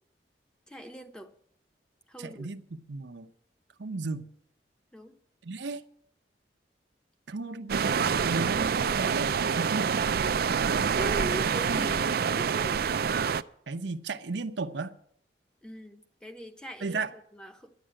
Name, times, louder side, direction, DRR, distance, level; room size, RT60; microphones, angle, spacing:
voice 1, 0.7-1.4 2.1-2.6 4.9-5.1 10.2-10.3 11.0-13.0 15.6-17.7, right 1 dB, 5° left, 0.9 m, -41 dB
voice 2, 2.2-3.3 3.8-4.2 5.4-5.8 7.3-10.0 11.7-11.9 13.7-14.9 16.8-17.1, right 3 dB, 85° right, 0.8 m, -34 dB
sound 1, 7.7-13.4, right 6 dB, 55° right, 0.4 m, -27 dB
11.5 x 9.8 x 7.6 m
head